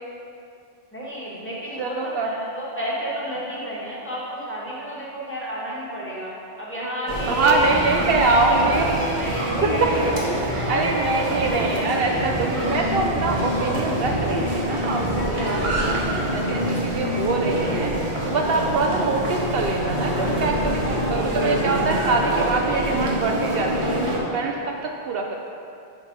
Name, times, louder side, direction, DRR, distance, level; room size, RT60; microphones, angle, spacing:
voice 1, 0.9-6.3 6.6-10.8 11.3-12.1, equal, 10° left, -7 dB, 1.3 m, -31 dB
voice 2, 1.8-2.3 7.3-8.9 9.8-9.9 10.7-16.0 16.3-17.9 18.2-20.8 21.1-25.3, right 3 dB, 70° right, 1 dB, 0.7 m, -24 dB
sound 1, 7.1-24.2, right 1 dB, 30° right, 1.0 m, -26 dB
sound 2, 12.6-17.8, left 2 dB, 50° left, 1.3 m, -30 dB
6.6 x 4.8 x 4.6 m, 2.5 s
omnidirectional pair, 1.1 m